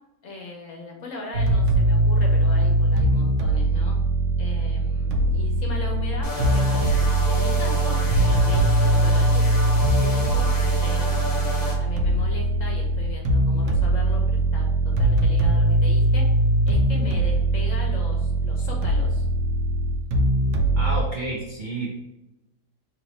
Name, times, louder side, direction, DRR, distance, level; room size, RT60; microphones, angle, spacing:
voice 1, 0.2-4.0 4.4-6.9 7.3-10.5 10.8-11.1 11.8-16.3 16.7-19.3, left 2 dB, 60° left, 0 dB, 1.1 m, -38 dB
sound 1, 1.3-21.0, right 2 dB, 85° right, 1.1 m, -21 dB
sound 2, 6.2-11.8, left 1 dB, 20° left, 0.5 m, -30 dB
voice 2, 20.8-21.9, right 2 dB, 55° right, -3 dB, 0.5 m, -30 dB
3.1 x 3.0 x 4.0 m, 0.94 s
omnidirectional pair, 1.7 m